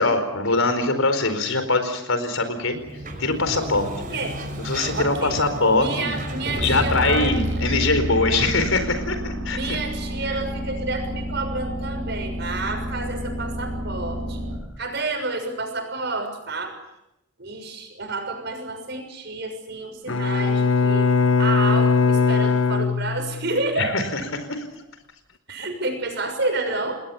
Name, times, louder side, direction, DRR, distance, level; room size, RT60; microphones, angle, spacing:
voice 1, 0.0-2.8 3.2-3.9 4.6-6.2 6.6-9.8 10.3-10.4 23.8-24.6, left 3 dB, 85° left, 9 dB, 4.6 m, -22 dB
Sliding door, 2.7-8.0, right 1 dB, 40° right, 5.5 m, -33 dB
voice 2, 4.1-4.4 4.9-5.4 5.7-7.4 9.5-14.4 14.8-16.8 17.4-21.1 21.4-24.0 25.5-27.0, right 3 dB, 55° right, 5 dB, 6.5 m, -29 dB
sound 1, 6.6-14.6, equal, 75° right, 5.8 m, -29 dB
Bowed string instrument, 20.1-23.6, left 5 dB, 70° left, 1.4 m, -20 dB
29.0 x 20.5 x 7.3 m, 0.87 s
head